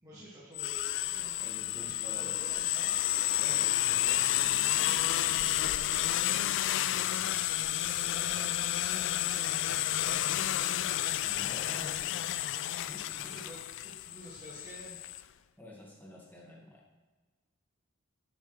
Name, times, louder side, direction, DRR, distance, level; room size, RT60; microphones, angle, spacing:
voice 1, 0.0-1.3 1.8-2.9 7.6-8.5 9.5-10.5 11.4-12.0 13.1-15.0, equal, 20° right, -9 dB, 2.0 m, -50 dB
sound 1, 0.5-15.2, left 13 dB, 60° left, 0.3 m, -31 dB
voice 2, 1.4-2.3 3.4-6.2 8.9-9.2 11.2-12.3 12.9-13.1 15.6-16.8, left 1 dB, 10° left, -3 dB, 1.8 m, -50 dB
11.0 x 8.2 x 3.3 m, 1.3 s
head